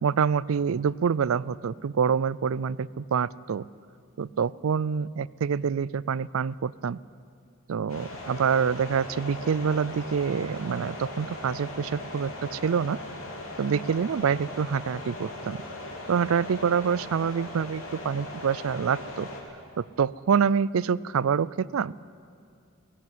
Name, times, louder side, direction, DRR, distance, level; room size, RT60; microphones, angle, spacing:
voice 1, 0.0-3.7 4.2-7.0 7.7-13.0 13.6-15.6 16.1-19.3 19.8-21.9, right 6 dB, 80° right, 21 dB, 0.4 m, -26 dB
sound 1, 7.9-19.4, left 1 dB, 85° left, 3.5 m, -39 dB
17.0 x 16.0 x 9.4 m, 2.5 s
head